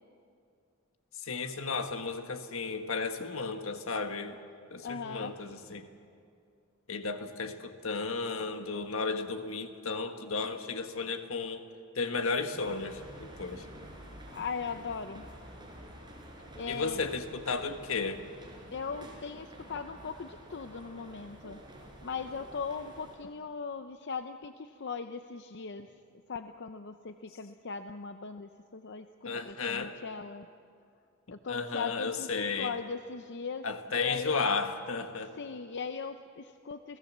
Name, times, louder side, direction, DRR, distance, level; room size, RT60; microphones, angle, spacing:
voice 1, 1.2-4.4 4.7-5.9 6.9-11.6 11.9-13.7 16.7-18.2 29.2-30.0 31.5-32.7 33.6-35.3, left 4 dB, 70° left, 7 dB, 1.5 m, -34 dB
voice 2, 4.8-5.3 14.3-15.3 16.5-17.0 18.7-21.6 22.0-25.9 26.3-30.5 31.3-33.7 33.9-34.5 35.4-37.0, left 5 dB, 55° left, 8 dB, 0.6 m, -39 dB
sound 1, 12.5-23.2, right 1 dB, 20° right, 4.6 m, -49 dB
30.0 x 17.5 x 7.3 m, 2.4 s
head